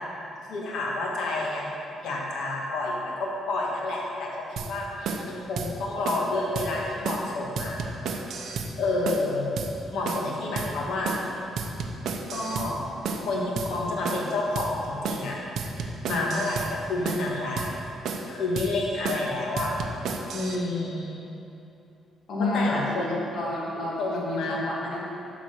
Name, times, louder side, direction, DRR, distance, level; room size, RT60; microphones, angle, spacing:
voice 1, 0.5-7.8 8.8-9.5 9.9-11.2 12.3-12.8 13.2-15.4 16.1-17.6 18.3-19.7 20.3-21.2 22.5-23.2 24.0-24.6, left 2 dB, 75° left, -3 dB, 1.4 m, -29 dB
sound 1, 4.6-4.7 5.0-5.3 5.6-5.7 6.0-6.3 6.5-6.7 7.0-7.3 7.6-8.7 9.0-9.3 9.6-9.7 10.0-10.3 10.6-10.7 11.0-11.3 11.6-12.7 13.0-13.3 13.6-13.7 14.0-14.3 14.5-14.7 15.0-15.3 15.6-16.7 17.0-17.3 17.6-17.7 18.0-18.3 18.6-18.7 19.0-19.3 19.6-20.6, right 5 dB, 60° right, 0.6 m, -32 dB
voice 2, 22.3-25.0, left 2 dB, 55° left, -4 dB, 1.8 m, -30 dB
9.2 x 4.0 x 6.2 m, 2.8 s
cardioid pair, 150°, 0 cm